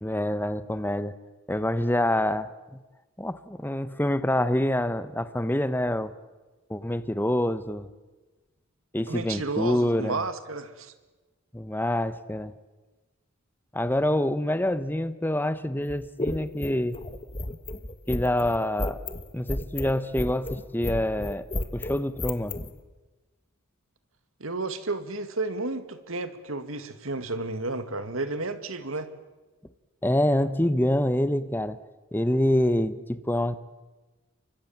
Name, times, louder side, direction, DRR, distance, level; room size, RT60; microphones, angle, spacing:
voice 1, 0.0-1.1 1.5-2.8 3.2-6.1 6.7-7.9 8.9-10.2 11.5-12.5 13.7-17.0 18.1-19.0 19.3-21.4 21.7-22.6 30.0-31.8 32.1-33.6, left 1 dB, 10° left, 12 dB, 1.1 m, -26 dB
voice 2, 9.1-10.9 24.4-29.1, right 2 dB, 75° right, 10 dB, 2.2 m, -32 dB
sound 1, 15.8-22.7, left 1 dB, 25° left, 1.5 m, -33 dB
29.5 x 24.5 x 7.4 m, 1.2 s
head